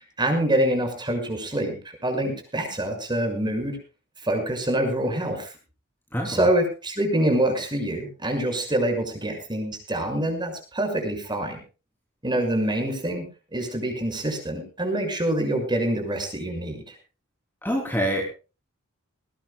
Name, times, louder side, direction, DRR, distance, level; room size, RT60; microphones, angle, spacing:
voice 1, 0.2-1.8 2.0-3.8 4.2-5.5 6.2-11.6 12.2-13.3 13.5-17.0, right 1 dB, 20° right, 4 dB, 6.3 m, -25 dB
voice 2, 6.1-6.4 17.6-18.2, equal, 10° left, 0 dB, 3.5 m, -25 dB
20.5 x 19.0 x 2.4 m, 0.33 s
head